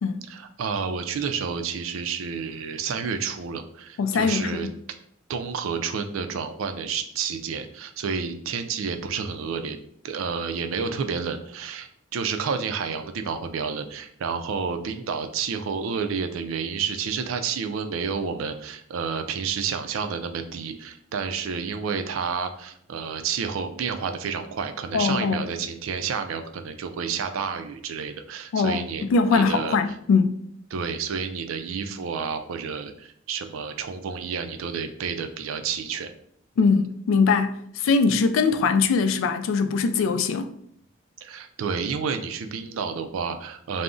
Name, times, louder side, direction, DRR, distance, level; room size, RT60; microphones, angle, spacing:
voice 1, 0.3-4.7 5.3-9.8 10.0-29.0 29.3-29.9 30.7-36.1 41.2-43.8, right 6 dB, 85° right, 0.3 m, -30 dB
voice 2, 4.0-4.7 24.9-25.4 28.5-30.3 36.6-40.5, left 4 dB, 75° left, 0.3 m, -22 dB
2.4 x 2.0 x 3.6 m
head